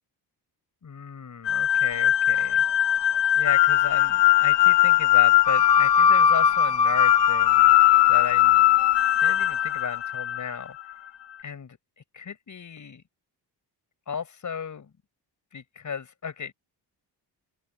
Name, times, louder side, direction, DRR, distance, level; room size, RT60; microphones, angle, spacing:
voice 1, 0.8-2.6 3.4-7.7 8.1-8.6 9.2-10.9 11.4-13.0 14.1-14.9 15.5-16.5, left 6 dB, 45° left, 7.2 m, -35 dB
sound 1, 1.4-10.6, left 11 dB, 80° left, 2.4 m, -19 dB
open air
wide cardioid pair, 140°, 41 cm